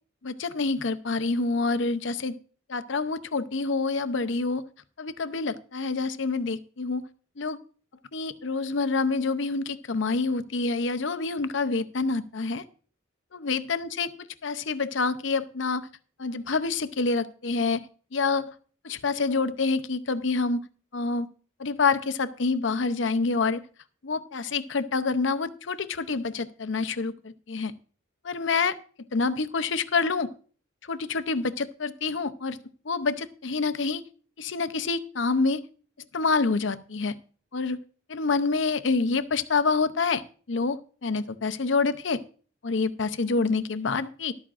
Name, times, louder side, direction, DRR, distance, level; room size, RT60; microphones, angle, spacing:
voice 1, 0.2-2.4 2.7-4.6 5.0-7.0 7.4-7.6 8.1-12.6 13.3-14.1 14.4-15.9 16.2-17.8 18.1-18.5 18.8-20.6 20.9-21.3 21.6-23.6 24.0-27.1 27.5-27.7 28.2-28.7 29.1-30.3 30.9-32.6 32.9-34.0 34.4-35.6 36.1-37.1 37.5-37.8 38.1-40.2 40.5-42.2 42.6-44.3, left 4 dB, 70° left, 12 dB, 0.7 m, -27 dB
13.5 x 12.0 x 2.5 m, 0.41 s
head